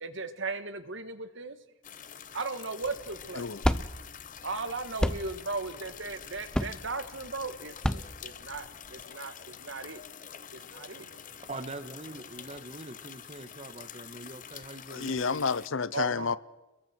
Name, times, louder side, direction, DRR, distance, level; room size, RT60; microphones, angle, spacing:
voice 1, 0.0-1.6 2.3-3.5 4.4-10.0 10.5-11.4 15.9-16.3, right 3 dB, 60° right, 1.7 m, -37 dB
sound 1, 1.8-15.7, left 8 dB, 40° left, 0.9 m, -47 dB
sound 2, 2.8-9.0, equal, 5° left, 0.6 m, -32 dB
voice 2, 11.5-15.5, right 2 dB, 30° right, 1.6 m, -43 dB
voice 3, 14.9-16.4, left 5 dB, 65° left, 0.7 m, -30 dB
29.5 x 22.0 x 4.6 m
head